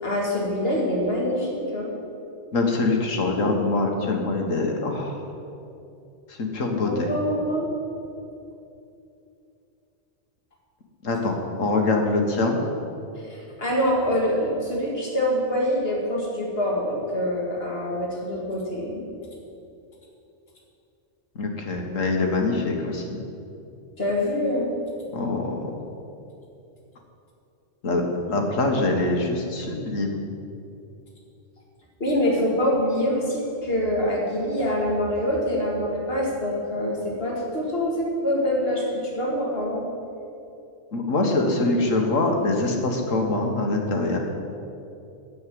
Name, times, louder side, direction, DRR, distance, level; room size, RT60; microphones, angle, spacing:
voice 1, 0.0-1.9 6.9-7.7 13.2-19.1 24.0-24.7 32.0-39.9, equal, 50° left, -2 dB, 2.3 m, -25 dB
voice 2, 2.5-5.2 6.3-7.1 11.0-12.6 21.3-23.2 25.1-25.7 27.8-30.3 40.9-44.2, left 2 dB, 80° left, 2 dB, 1.8 m, -24 dB
9.5 x 8.2 x 7.6 m, 2.7 s
omnidirectional pair, 1.3 m